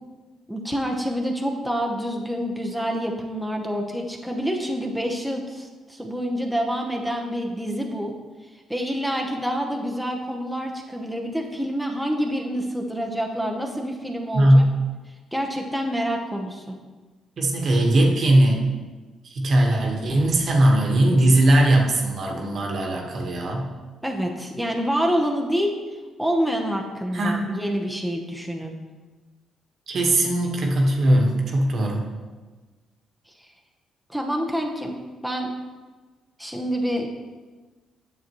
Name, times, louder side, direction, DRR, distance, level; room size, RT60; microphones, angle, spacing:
voice 1, 0.5-8.1 8.7-14.6 15.3-16.8 24.0-25.8 26.2-28.7 34.1-34.9 35.2-35.5 36.4-37.1, equal, ahead, 0 dB, 0.9 m, -27 dB
voice 2, 14.3-14.7 17.4-18.7 19.2-23.7 27.1-27.4 29.9-32.1, right 1 dB, 55° right, 1 dB, 1.3 m, -19 dB
9.2 x 6.9 x 3.1 m, 1.3 s
cardioid pair, 90°, 0 cm